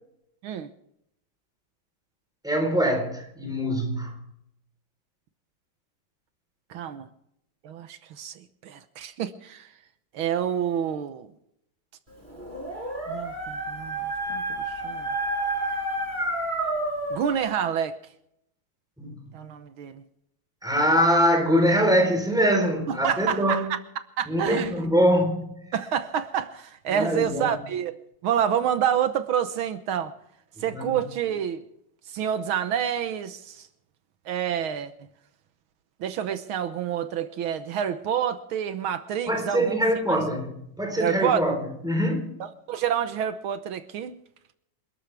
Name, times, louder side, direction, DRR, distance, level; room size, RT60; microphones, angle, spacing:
voice 1, 2.4-4.2 19.0-19.3 20.6-23.7 24.3-25.5 26.9-27.5 30.6-31.0 39.3-42.4, equal, ahead, 3.9 m, -23 dB
voice 2, 6.7-7.1 7.6-8.3 8.6-9.7 10.1-11.3 13.1-14.0 14.3-14.4 14.8-15.1 17.1-18.0 19.3-20.0 22.9-23.7 24.2-24.7 25.7-27.9 28.2-30.1 30.6-31.6 32.1-33.7 34.3-34.9 36.0-39.7 40.1-40.2 41.0-41.4 42.7-44.1, right 9 dB, 80° right, 1.8 m, -28 dB
Dog, 12.3-17.4, right 2 dB, 20° right, 7.4 m, -30 dB
28.0 x 13.0 x 3.4 m
omnidirectional pair, 2.2 m